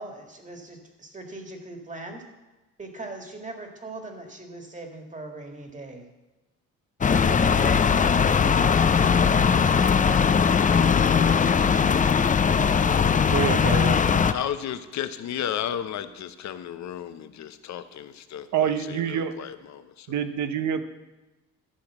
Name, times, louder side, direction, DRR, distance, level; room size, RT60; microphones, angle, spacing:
voice 1, 0.0-2.2 2.8-6.1, right 2 dB, 25° right, 3 dB, 2.0 m, -40 dB
sound 1, 7.0-14.3, left 6 dB, 25° left, 0.5 m, -20 dB
voice 2, 13.3-14.0 18.5-19.5 20.1-20.8, right 8 dB, 70° right, 9 dB, 0.9 m, -26 dB
voice 3, 14.3-20.1, left 10 dB, 65° left, 11 dB, 0.8 m, -33 dB
12.5 x 5.0 x 7.4 m, 1.1 s
cardioid pair, 90°, 30 cm